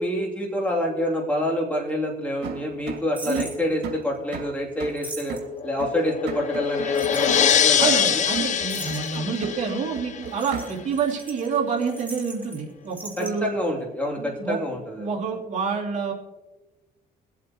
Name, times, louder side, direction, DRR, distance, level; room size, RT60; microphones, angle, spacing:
voice 1, 0.0-5.4 5.6-8.2 13.2-15.1, left 1 dB, 10° left, -2 dB, 3.1 m, -27 dB
sound 1, 2.4-11.0, right 7 dB, 75° right, 2.3 m, -37 dB
sound 2, 3.2-3.6 4.8-5.6 6.9-7.6 8.0-8.1 8.3-8.4 8.6-9.4 10.3-12.6 12.9-13.3, right 2 dB, 10° right, 2.1 m, -39 dB
sound 3, 5.3-10.4, left 8 dB, 45° left, 0.6 m, -24 dB
voice 2, 7.8-13.5 14.2-14.6 15.0-16.1, right 5 dB, 45° right, -1 dB, 2.9 m, -28 dB
23.5 x 8.0 x 3.1 m, 1.1 s
cardioid pair, 110°, 17 cm